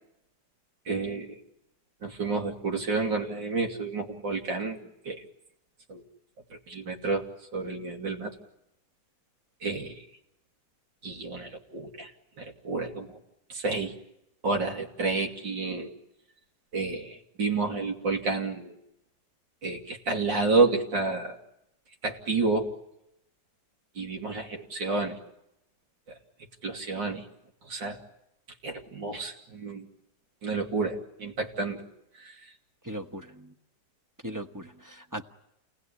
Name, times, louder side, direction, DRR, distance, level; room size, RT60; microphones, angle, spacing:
voice 1, 0.9-1.4 2.0-4.8 5.1-5.2 5.9-6.0 6.7-7.2 7.5-8.3 9.6-10.0 11.0-12.1 12.4-13.2 13.5-13.9 14.4-15.9 16.7-18.7 19.6-21.4 22.0-22.7 24.0-25.2 26.6-27.2 27.7-28.0 28.6-29.9 30.4-31.8 32.2-32.3, right 3 dB, 75° right, 2 dB, 3.5 m, -30 dB
voice 2, 32.8-33.5 34.2-35.2, right 1 dB, 15° right, 7 dB, 0.9 m, -38 dB
29.5 x 19.5 x 9.9 m, 0.85 s
omnidirectional pair, 2.0 m